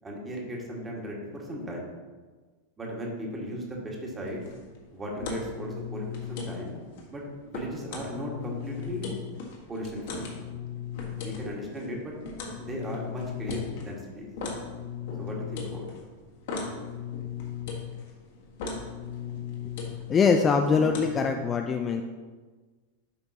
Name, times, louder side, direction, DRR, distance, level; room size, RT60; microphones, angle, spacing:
voice 1, 0.0-1.9 2.8-4.4 4.9-6.8 7.1-9.2 9.7-10.3 11.2-12.1 12.6-14.3 15.2-15.9, equal, 15° right, -1 dB, 1.8 m, -36 dB
sound 1, 4.2-21.2, left 6 dB, 55° left, 1.6 m, -37 dB
voice 2, 20.1-22.0, left 5 dB, 20° left, 4 dB, 0.4 m, -23 dB
11.0 x 5.2 x 2.9 m, 1.4 s
figure-of-eight pair, 90°, 0 cm